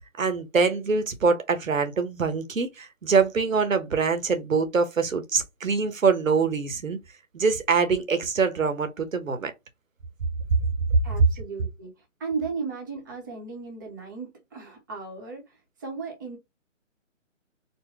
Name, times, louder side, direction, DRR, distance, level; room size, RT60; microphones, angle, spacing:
voice 1, 0.2-7.0 7.3-9.5 10.9-11.0, right 5 dB, 80° right, 1.3 m, -24 dB
voice 2, 11.0-16.4, right 4 dB, 15° right, 0.9 m, -35 dB
4.4 x 2.2 x 3.4 m
hypercardioid pair, 165°, 39 cm